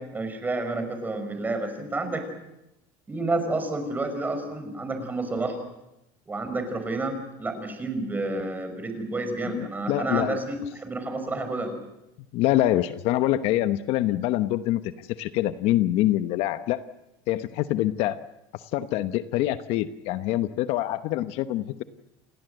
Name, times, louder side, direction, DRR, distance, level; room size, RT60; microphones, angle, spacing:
voice 1, 0.0-2.2 3.1-5.6 6.3-11.7, right 2 dB, 15° right, 7 dB, 5.4 m, -30 dB
voice 2, 9.5-10.4 12.3-16.8 17.3-18.2 18.5-21.8, left 14 dB, 60° left, 11 dB, 1.0 m, -25 dB
29.0 x 19.0 x 7.9 m, 0.88 s
cardioid pair, 135°, 12 cm